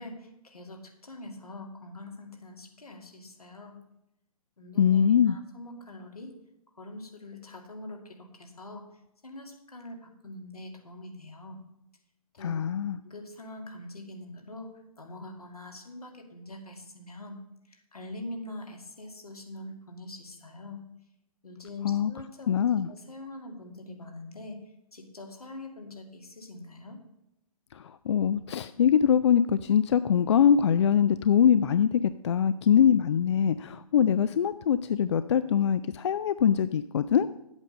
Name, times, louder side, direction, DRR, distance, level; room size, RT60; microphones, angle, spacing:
voice 1, 0.0-3.8 4.6-6.3 6.8-8.9 9.2-11.6 12.4-12.6 13.0-14.7 15.0-17.4 17.7-20.8 21.4-22.6 22.9-24.6 24.9-27.0, left 2 dB, 80° left, 3 dB, 2.2 m, -43 dB
voice 2, 4.8-5.4 12.4-13.0 21.8-22.1 22.5-22.9 27.8-37.3, left 8 dB, 50° left, 13 dB, 0.4 m, -23 dB
9.8 x 8.0 x 5.4 m, 0.85 s
figure-of-eight pair, 130°, 19 cm